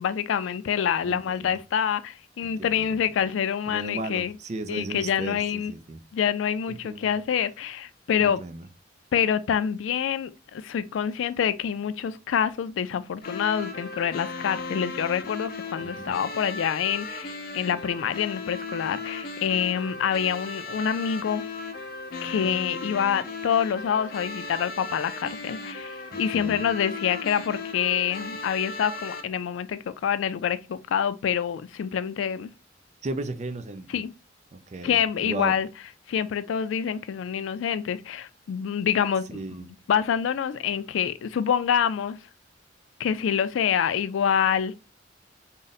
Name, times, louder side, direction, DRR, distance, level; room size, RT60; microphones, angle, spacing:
voice 1, 0.0-4.4 4.7-5.7 6.1-8.4 9.1-21.5 22.2-32.5 33.9-34.1 34.8-35.7 36.1-39.4 39.9-42.2 43.0-44.7, left 8 dB, 90° left, 0.3 m, -26 dB
voice 2, 1.0-1.6 2.4-3.0 3.7-6.0 6.7-7.1 8.2-8.7 15.8-16.2 26.1-26.7 33.0-34.0 34.5-35.6 39.3-39.7, right 2 dB, 35° right, 0.4 m, -36 dB
sound 1, 13.2-29.2, left 3 dB, 50° left, 0.6 m, -36 dB
3.7 x 2.1 x 4.0 m
head